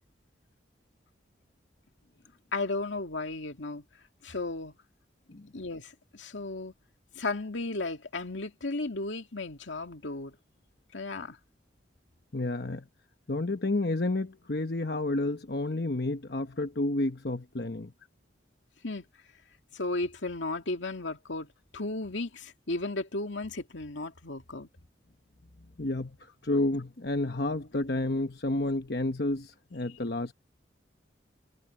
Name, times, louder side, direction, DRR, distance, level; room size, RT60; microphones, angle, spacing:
voice 1, 2.5-3.8 4.2-4.7 5.5-6.7 7.2-10.3 10.9-11.4 18.8-19.0 19.7-21.5 21.7-24.7, left 2 dB, 90° left, 2.4 m, -34 dB
voice 2, 12.3-12.9 13.3-17.9 25.8-26.2 26.4-30.3, left 2 dB, 60° left, 1.0 m, -30 dB
head